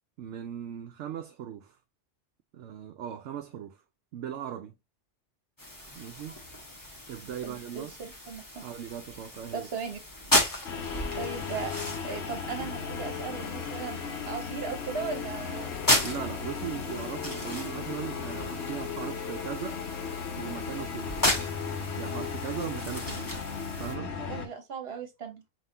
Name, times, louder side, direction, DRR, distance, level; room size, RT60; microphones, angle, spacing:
voice 1, 0.2-1.8 2.5-3.8 4.1-4.7 6.0-6.4 7.1-7.9 8.5-9.7 16.0-19.8 20.4-21.2 22.0-23.3 23.8-24.2, right 9 dB, 75° right, 0.9 m, -38 dB
sound 1, 5.6-23.9, left 1 dB, 15° left, 1.1 m, -34 dB
voice 2, 7.4-8.6 9.5-10.0 11.1-11.7 12.0-15.7 24.2-25.4, right 6 dB, 55° right, 1.3 m, -37 dB
sound 2, 10.6-24.5, left 6 dB, 65° left, 1.0 m, -36 dB
5.4 x 2.9 x 2.7 m
omnidirectional pair, 1.3 m